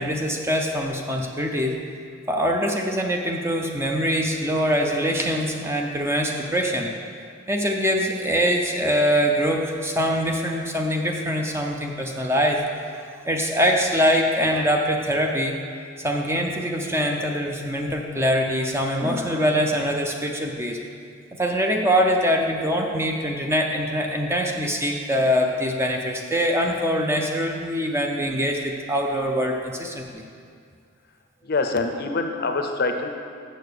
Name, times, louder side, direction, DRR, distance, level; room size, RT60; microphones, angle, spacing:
voice 1, 0.0-1.8 2.3-6.9 7.5-12.6 13.3-15.6 16.0-20.8 21.4-30.2, equal, 10° right, 2 dB, 0.5 m, -23 dB
voice 2, 31.4-33.1, left 3 dB, 45° left, 5 dB, 0.6 m, -25 dB
6.7 x 6.4 x 6.8 m, 2.3 s
head